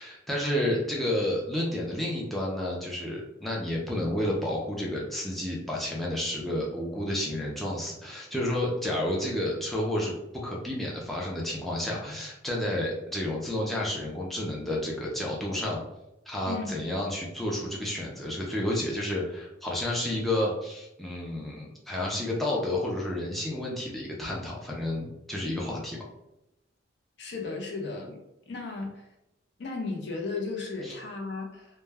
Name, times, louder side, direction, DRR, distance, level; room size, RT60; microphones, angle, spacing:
voice 1, 0.0-10.1 10.4-15.8 16.3-26.0 30.8-30.9, left 1 dB, ahead, -4 dB, 0.4 m, -30 dB
voice 2, 27.2-28.2 28.5-29.1 29.6-31.7, left 3 dB, 60° left, 1 dB, 0.5 m, -35 dB
2.2 x 2.1 x 3.2 m, 0.88 s
head